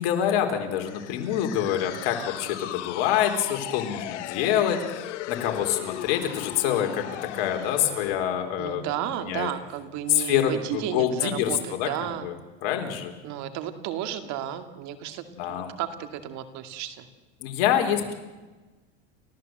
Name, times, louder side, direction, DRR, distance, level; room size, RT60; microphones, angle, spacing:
voice 1, 0.0-8.8 9.2-9.5 10.1-11.5 11.8-11.9 12.2-12.4 12.6-13.1 15.4-15.8 17.4-18.1, left 10 dB, 65° left, 4 dB, 4.1 m, -26 dB
sound 1, 0.8-8.3, left 15 dB, 90° left, 1.0 m, -37 dB
voice 2, 8.6-12.3 13.2-17.1, right 11 dB, 55° right, 8 dB, 2.2 m, -33 dB
30.0 x 15.0 x 7.8 m, 1.2 s
supercardioid pair, 120°, 34 cm